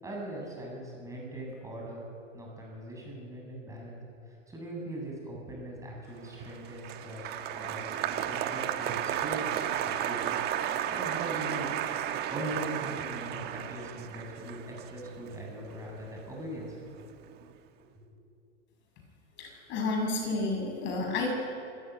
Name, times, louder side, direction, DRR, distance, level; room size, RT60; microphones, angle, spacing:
voice 1, 0.0-2.0 2.3-4.0 4.3-9.7 10.0-10.4 10.7-11.7 12.3-16.8 18.0-18.1, right 1 dB, 10° right, -2 dB, 7.9 m, -41 dB
Applause, 6.3-16.7 16.9-17.5, right 10 dB, 30° right, 1.4 m, -33 dB
voice 2, 19.4-21.3, left 3 dB, 30° left, 1 dB, 7.0 m, -31 dB
26.5 x 15.5 x 9.6 m, 2.6 s
hypercardioid pair, 145°, 35 cm